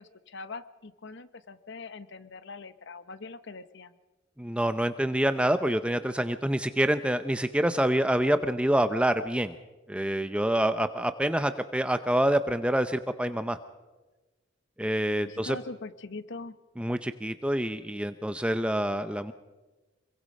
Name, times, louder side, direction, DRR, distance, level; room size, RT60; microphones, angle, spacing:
voice 1, 0.0-3.9 15.2-16.6, left 3 dB, 65° left, 12 dB, 1.2 m, -42 dB
voice 2, 4.4-9.5 9.9-13.6 14.8-15.6 16.8-19.3, right 1 dB, 5° right, 10 dB, 0.7 m, -26 dB
26.5 x 23.0 x 5.4 m, 1.2 s
head